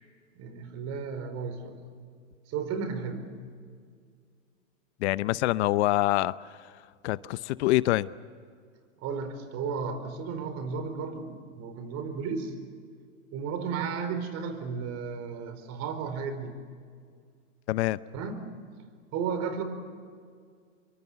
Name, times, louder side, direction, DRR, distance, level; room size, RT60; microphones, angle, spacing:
voice 1, 0.3-1.8 2.5-3.3 9.0-12.5 13.3-16.5 18.1-18.4 19.1-19.6, right 5 dB, 45° right, 4.7 m, -34 dB
voice 2, 5.0-6.7 7.0-8.1 17.7-18.0, left 17 dB, 60° left, 0.8 m, -26 dB
26.0 x 23.5 x 8.0 m
hypercardioid pair, 115°, 37 cm